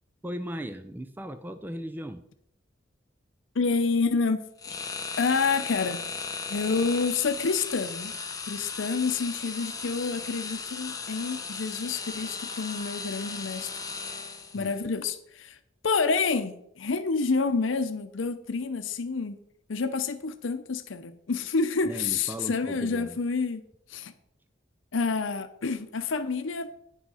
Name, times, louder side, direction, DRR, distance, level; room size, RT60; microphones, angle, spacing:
voice 1, 0.2-2.2 14.5-14.7 21.8-23.2, equal, 10° right, 0.5 m, -37 dB
voice 2, 3.5-4.7 5.2-6.0 6.5-8.1 8.5-13.8 14.5-15.6 15.8-19.4 19.7-24.1 24.9-26.7, left 4 dB, 85° left, 0.7 m, -28 dB
sound 1, 4.6-14.7, left 5 dB, 20° left, 1.0 m, -36 dB
9.8 x 6.2 x 5.6 m
head